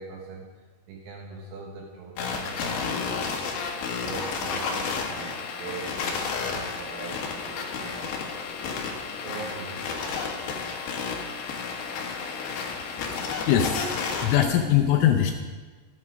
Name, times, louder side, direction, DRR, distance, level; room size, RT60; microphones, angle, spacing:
voice 1, 0.0-8.5 9.2-10.3, right 4 dB, 75° right, -1 dB, 3.7 m, -42 dB
sound 1, 2.2-14.4, left 5 dB, 65° left, 2.9 m, -31 dB
voice 2, 12.9-15.3, left 10 dB, 80° left, 4 dB, 3.1 m, -23 dB
16.0 x 9.6 x 5.0 m, 1.3 s
omnidirectional pair, 6.0 m